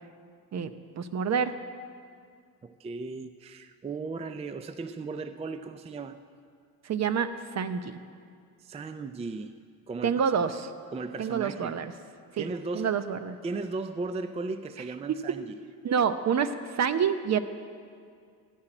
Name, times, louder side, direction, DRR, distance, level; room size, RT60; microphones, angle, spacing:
voice 1, 0.5-1.5 6.8-8.0 10.0-10.7 11.2-11.9 12.3-12.5 12.7-13.4 15.1-15.4 15.8-17.4, right 7 dB, 50° right, 11 dB, 0.8 m, -28 dB
voice 2, 2.6-6.2 8.6-9.6 9.9-10.2 10.9-11.8 12.4-12.9 13.4-15.5, right 3 dB, 20° right, 11 dB, 0.4 m, -36 dB
14.0 x 5.8 x 9.8 m, 2.2 s
cardioid pair, 95°, 35 cm